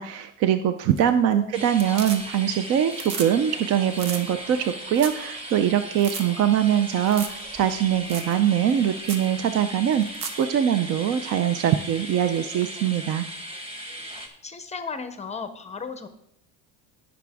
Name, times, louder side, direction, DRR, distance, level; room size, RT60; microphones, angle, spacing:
voice 1, 0.0-13.3, right 10 dB, 40° right, 10 dB, 0.5 m, -23 dB
sound 1, 0.8-1.3 1.6-2.6 2.8-3.3 3.6-3.7 3.9-4.2 4.7-4.8 5.0-5.2 5.6-5.7 6.0-6.2 7.1-7.4 7.7-7.8 8.1-8.3 8.7-8.8 9.0-9.3 9.9-10.4 12.6-12.7, right 5 dB, 80° right, 1.5 m, -35 dB
voice 2, 1.0-2.1 14.4-16.1, left 5 dB, 20° left, 9 dB, 0.6 m, -36 dB
sound 2, 1.5-14.3, right 1 dB, 15° right, 1.5 m, -38 dB
18.0 x 6.1 x 3.5 m, 0.77 s
cardioid pair, 145°, 38 cm